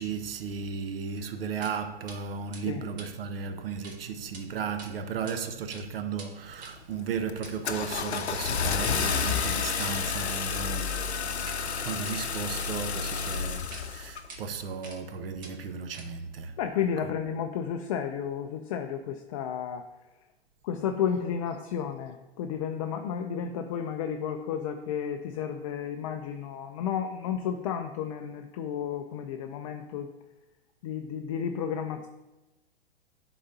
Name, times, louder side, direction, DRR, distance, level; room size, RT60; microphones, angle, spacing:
voice 1, 0.0-11.0 11.7-16.6, right 6 dB, 65° right, 0.8 m, -35 dB
sound 1, 1.6-1.8 2.1-2.2 2.5-4.0 4.2-4.4 4.8-5.4 5.6-11.6 11.9-12.7 13.2-13.3 13.7-13.8 14.3-14.4 14.8-15.1 15.4-16.3, right 3 dB, 25° right, 1.0 m, -48 dB
Car / Engine starting, 6.5-6.8 7.3-14.3, left 6 dB, 85° left, 0.6 m, -30 dB
voice 2, 16.6-19.8 20.6-30.1 30.8-32.1, left 8 dB, 35° left, 0.4 m, -32 dB
11.0 x 3.9 x 2.7 m
figure-of-eight pair, 110°, 32 cm